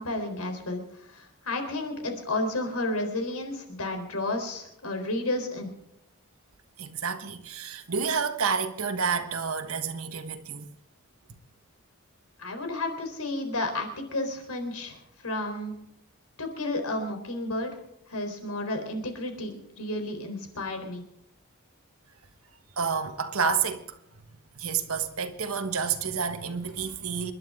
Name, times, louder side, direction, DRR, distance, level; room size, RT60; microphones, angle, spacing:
voice 1, 0.0-5.7 12.4-15.7 16.4-17.7 18.1-21.0, left 2 dB, 85° left, 3.9 m, -32 dB
voice 2, 6.8-10.7 22.8-24.0 24.6-27.3, right 6 dB, 75° right, 1.4 m, -29 dB
28.0 x 11.5 x 3.7 m
head